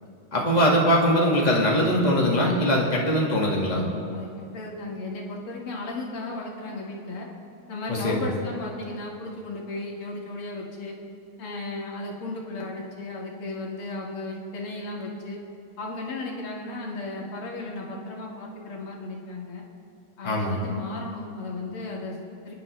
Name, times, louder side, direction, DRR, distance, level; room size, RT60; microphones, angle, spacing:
voice 1, 0.3-3.9 7.9-8.3 20.2-20.5, equal, 20° left, -3 dB, 1.8 m, -21 dB
voice 2, 4.1-7.3 7.7-11.0 11.4-15.4 15.8-19.7 20.2-22.5, left 2 dB, 80° left, -2 dB, 2.6 m, -35 dB
23.5 x 10.5 x 3.2 m, 2.6 s
omnidirectional pair, 2.4 m